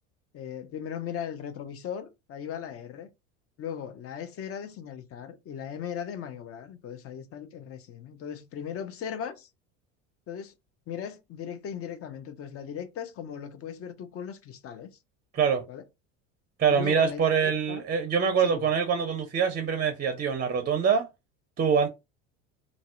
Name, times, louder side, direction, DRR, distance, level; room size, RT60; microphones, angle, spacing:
voice 1, 0.3-3.1 3.6-9.5 10.3-10.5 10.9-14.9 15.7-15.8 16.7-17.8 18.4-18.6, left 8 dB, 35° left, 0.5 m, -38 dB
voice 2, 16.6-21.1 21.6-21.9, right 6 dB, 25° right, 0.5 m, -24 dB
2.6 x 2.0 x 2.4 m
hypercardioid pair, 85°, 39 cm